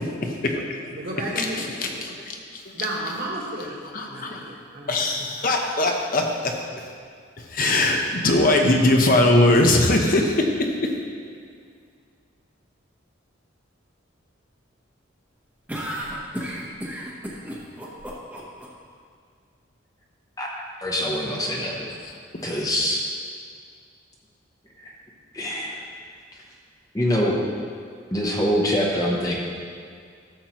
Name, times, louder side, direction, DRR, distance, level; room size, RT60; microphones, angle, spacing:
voice 1, 0.2-0.9 1.4-2.6 3.9-4.4 4.9-6.6 7.5-10.9 22.3-22.4, left 2 dB, 45° left, 2 dB, 0.9 m, -21 dB
voice 2, 0.9-1.8 2.7-5.3, right 1 dB, 50° right, -3 dB, 1.6 m, -33 dB
sound 1, 15.7-18.7, equal, 10° right, 1.0 m, -32 dB
voice 3, 20.8-21.9 22.4-23.0 24.8-24.9 25.3-25.8 26.9-27.4 28.1-29.4, equal, 15° left, -2 dB, 0.9 m, -24 dB
13.0 x 7.2 x 3.1 m, 2.1 s
head